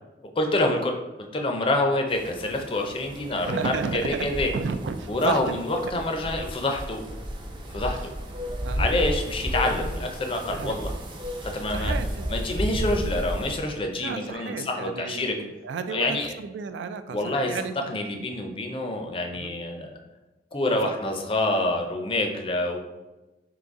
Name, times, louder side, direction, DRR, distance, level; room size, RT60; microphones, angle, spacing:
voice 1, 0.4-1.0 1.3-4.5 5.1-7.0 7.7-8.1 8.8-10.9 11.4-11.9 12.3-15.4 15.9-16.3 17.1-17.6 17.9-20.0 20.5-22.8, left 2 dB, 30° left, 3 dB, 0.4 m, -27 dB
sound 1, 2.1-13.6, equal, 25° right, 0.5 m, -33 dB
voice 2, 3.5-4.2 4.5-5.6 5.8-5.9 7.9-8.1 8.6-8.9 10.5-10.8 11.7-12.3 13.9-17.9 19.3-19.5 20.8-20.9, right 5 dB, 90° right, 10 dB, 0.3 m, -33 dB
3.9 x 2.8 x 3.5 m, 1.1 s
head